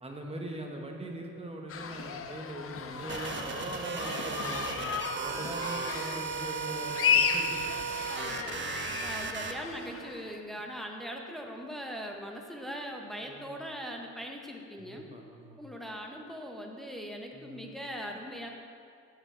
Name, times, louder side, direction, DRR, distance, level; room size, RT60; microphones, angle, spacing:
voice 1, 0.0-4.9 5.2-7.7 13.2-13.6 14.8-15.6 17.3-17.6, right 1 dB, 20° right, 1 dB, 1.1 m, -41 dB
sound 1, 1.7-10.4, left 6 dB, 50° left, 0.6 m, -34 dB
sound 2, 3.1-9.5, right 6 dB, 40° right, 0.6 m, -36 dB
voice 2, 7.9-15.1 15.6-18.5, equal, ahead, 1 dB, 0.9 m, -41 dB
8.6 x 6.7 x 3.8 m, 2.3 s
cardioid pair, 90°, 30 cm